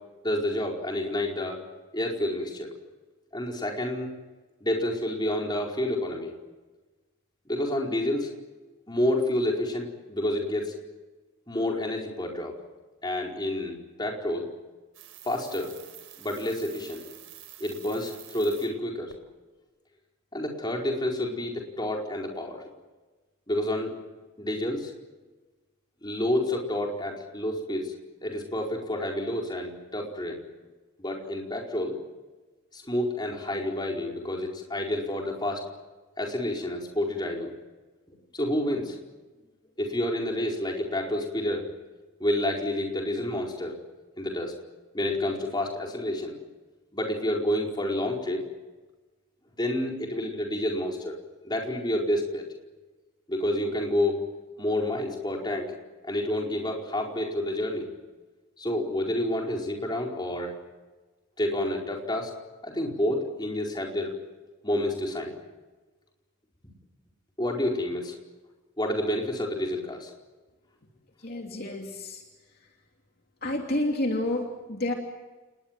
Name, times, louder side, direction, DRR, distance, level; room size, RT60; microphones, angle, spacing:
voice 1, 0.2-1.6 1.9-2.7 3.3-4.1 4.6-6.3 7.5-8.3 8.9-10.7 11.5-12.6 13.0-14.5 15.2-15.8 16.2-17.0 17.6-19.1 20.3-22.7 23.5-23.9 24.4-24.9 26.0-27.9 28.2-30.4 31.0-32.0 32.7-35.6 36.2-37.5 38.1-39.0 39.8-41.7 42.2-43.8 44.2-44.5 44.9-46.4 46.9-48.5 49.6-51.2 51.4-52.5 53.3-54.2 54.6-55.7 56.0-57.9 58.6-60.5 61.4-62.3 62.6-64.2 64.6-65.4 67.4-68.2 68.8-70.1, left 1 dB, 20° left, 0 dB, 4.7 m, -29 dB
sound 1, 14.9-18.7 19.1-19.2, right 12 dB, 80° right, 4.5 m, -48 dB
voice 2, 71.2-72.2 73.4-74.9, left 1 dB, 50° left, 1 dB, 3.0 m, -29 dB
29.5 x 20.0 x 7.6 m, 1.2 s
head